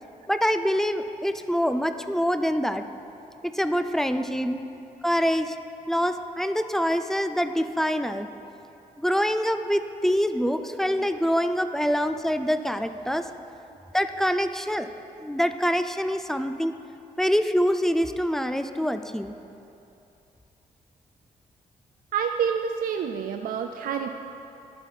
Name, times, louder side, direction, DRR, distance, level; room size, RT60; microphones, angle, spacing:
voice 1, 0.3-2.8 3.5-4.6 5.0-5.5 5.9-8.3 9.0-13.2 13.9-14.9 15.2-16.7 17.2-19.3, equal, 5° left, 9 dB, 0.4 m, -25 dB
voice 2, 22.1-24.2, right 7 dB, 70° right, 5 dB, 0.4 m, -28 dB
12.0 x 4.2 x 4.9 m, 2.9 s
cardioid pair, 70°, 15 cm